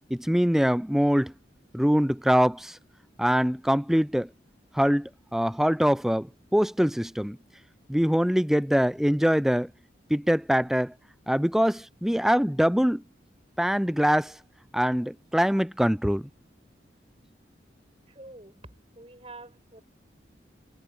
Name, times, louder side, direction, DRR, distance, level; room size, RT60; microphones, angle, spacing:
voice 1, 0.1-1.3 1.7-2.8 3.2-4.3 4.7-7.4 7.9-9.7 10.1-10.9 11.3-13.0 13.6-14.4 14.7-16.3, equal, ahead, 0.5 m, -23 dB
voice 2, 18.1-19.8, right 2 dB, 35° right, 5.7 m, -47 dB
head